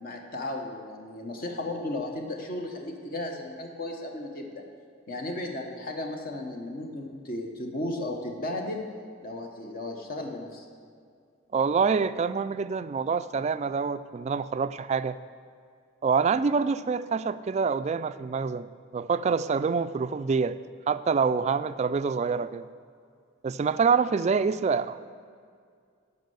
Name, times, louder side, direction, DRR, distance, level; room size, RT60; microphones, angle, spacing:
voice 1, 0.0-4.6 5.1-8.9 9.2-10.6, left 1 dB, 50° left, 2 dB, 1.0 m, -35 dB
voice 2, 11.5-15.2 16.0-20.6 20.9-22.7 23.4-25.1, right 5 dB, 35° right, 14 dB, 0.3 m, -26 dB
11.5 x 5.4 x 7.9 m, 2.2 s
head